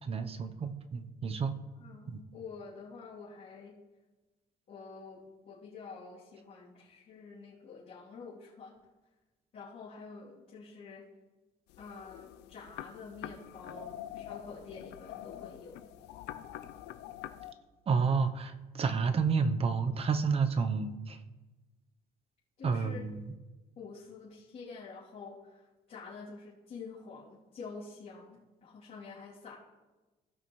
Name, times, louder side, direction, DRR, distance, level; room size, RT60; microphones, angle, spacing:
voice 1, 0.0-1.5 2.1-2.2 17.9-21.2 22.6-23.2, right 5 dB, 35° right, 10 dB, 0.7 m, -30 dB
voice 2, 1.8-3.8 4.7-5.2 5.4-8.8 9.5-11.1 11.8-15.9 22.6-23.0 23.8-29.6, left 4 dB, 50° left, -10 dB, 3.0 m, -48 dB
sound 1, 11.7-17.5, left 12 dB, 85° left, 0.5 m, -46 dB
17.0 x 5.8 x 3.2 m, 1.2 s
cardioid pair, 110°, 17 cm